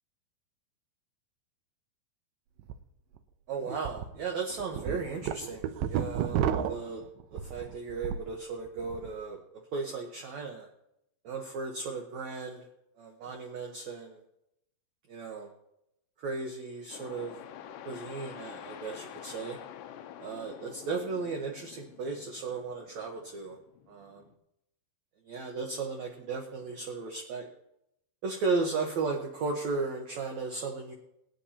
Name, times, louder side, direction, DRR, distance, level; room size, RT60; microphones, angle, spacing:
sound 1, 2.6-2.7 3.2-3.3 3.8-4.1 4.5-8.3 8.7-9.1, right 9 dB, 90° right, 1.9 m, -31 dB
voice 1, 3.5-6.4 6.7-7.0 7.3-9.4 9.7-10.7 11.2-12.7 13.0-14.2 15.1-15.5 16.2-17.3 17.9-19.6 20.2-23.6 23.9-24.2 25.3-27.5 28.2-30.9, right 4 dB, 65° right, 1 dB, 1.8 m, -35 dB
sound 2, 16.9-24.3, left 10 dB, 75° left, 2.1 m, -48 dB
24.0 x 9.3 x 2.9 m, 0.81 s
omnidirectional pair, 4.8 m